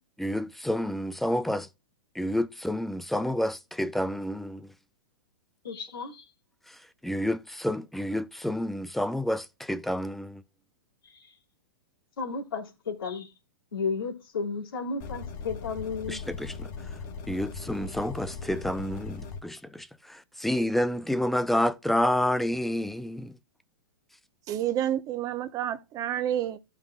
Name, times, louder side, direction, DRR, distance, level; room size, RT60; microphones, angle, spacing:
voice 1, 0.2-1.7 2.1-4.7 6.7-6.8 7.0-10.4 16.1-16.7 17.3-23.3, left 1 dB, ahead, 0.6 m, -29 dB
voice 2, 5.6-6.3 11.0-11.3 12.2-13.3 13.7-16.2, left 5 dB, 90° left, 3.1 m, -33 dB
sound 1, 15.0-19.4, left 4 dB, 45° left, 2.3 m, -39 dB
voice 3, 24.5-26.6, right 11 dB, 30° right, 1.0 m, -29 dB
15.0 x 5.7 x 2.4 m
hypercardioid pair, 125°, 12 cm